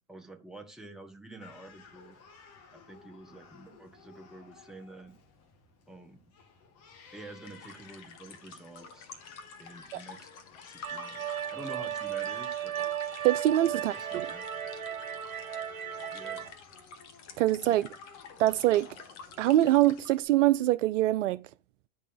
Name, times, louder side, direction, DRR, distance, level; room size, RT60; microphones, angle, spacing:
voice 1, 0.1-2.2 2.7-5.1 5.9-6.2 7.1-9.1 9.6-10.3 10.6-12.9 13.7-14.4 16.1-16.5 17.6-17.8, right 1 dB, ahead, 1.1 m, -48 dB
Crying sobbing, 1.4-20.2, left 6 dB, 40° left, 1.9 m, -54 dB
sound 1, 7.4-20.2, left 5 dB, 55° left, 1.8 m, -50 dB
sound 2, 10.8-16.5, right 10 dB, 80° right, 1.3 m, -35 dB
voice 2, 13.2-14.3 17.4-17.9 18.4-18.9 19.4-21.4, right 14 dB, 60° right, 0.5 m, -24 dB
9.9 x 4.4 x 5.4 m
hypercardioid pair, 105°, 41 cm